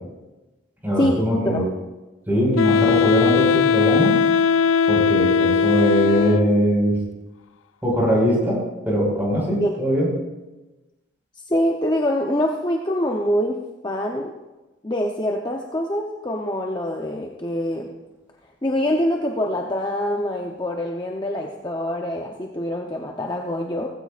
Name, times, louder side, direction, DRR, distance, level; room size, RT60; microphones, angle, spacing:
voice 1, 0.8-1.6 2.3-4.1 4.9-7.0 7.8-8.6 8.8-10.1, equal, 10° right, -4 dB, 5.0 m, -21 dB
Wind instrument woodwind instrument, 2.6-6.7, left 6 dB, 85° left, 0.5 m, -19 dB
voice 2, 11.5-13.6 13.8-14.3 14.8-17.9 18.6-23.9, left 1 dB, 20° left, 0 dB, 0.8 m, -24 dB
18.0 x 15.5 x 2.5 m, 1.1 s
head